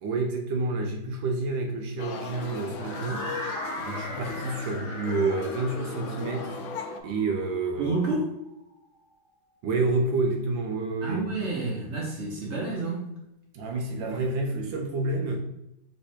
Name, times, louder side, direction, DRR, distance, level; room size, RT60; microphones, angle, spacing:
voice 1, 0.0-3.3 3.8-6.6 7.0-7.9 9.6-11.3 13.5-15.4, right 3 dB, 75° right, 3 dB, 1.3 m, -29 dB
sound 1, 2.0-7.0, left 5 dB, 80° left, 1.3 m, -37 dB
sound 2, 2.7-8.7, left 1 dB, 10° left, 1.1 m, -39 dB
voice 2, 7.8-8.4 11.0-13.0, right 3 dB, 60° right, -2 dB, 0.7 m, -29 dB
3.4 x 3.2 x 4.3 m, 0.86 s
omnidirectional pair, 2.2 m